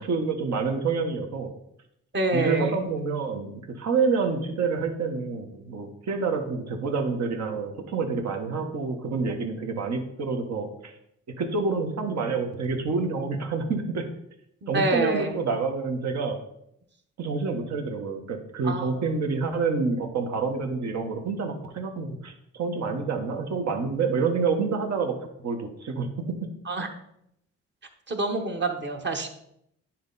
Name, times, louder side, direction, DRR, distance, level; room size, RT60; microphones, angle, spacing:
voice 1, 0.0-1.5 2.3-10.9 11.4-14.0 14.7-16.4 17.2-22.3 22.6-25.2 25.4-26.3, right 4 dB, 60° right, 4 dB, 1.5 m, -28 dB
voice 2, 2.1-2.9 14.6-15.4 18.6-19.0 26.7-26.9 28.1-29.3, right 2 dB, 35° right, 4 dB, 1.4 m, -27 dB
10.0 x 4.4 x 4.1 m, 0.75 s
cardioid pair, 90°, 30 cm